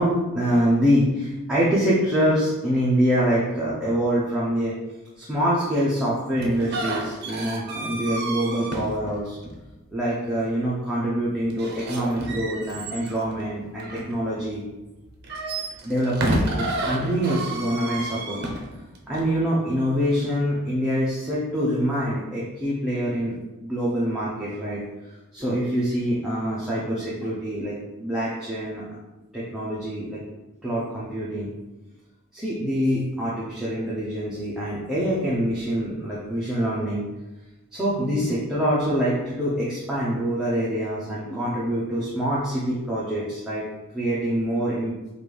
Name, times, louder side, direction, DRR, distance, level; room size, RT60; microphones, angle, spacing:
voice 1, 0.0-4.8 5.2-9.4 9.9-14.6 15.8-18.4 19.1-24.8 25.3-27.7 28.0-28.8 29.3-30.2 30.6-31.5 32.3-37.1 37.7-43.6 43.9-44.9, equal, 5° right, -8 dB, 0.6 m, -25 dB
sound 1, 6.4-9.7 11.5-14.6 15.1-19.3, right 1 dB, 45° right, 0.6 m, -30 dB
5.2 x 2.5 x 3.3 m, 1.1 s
head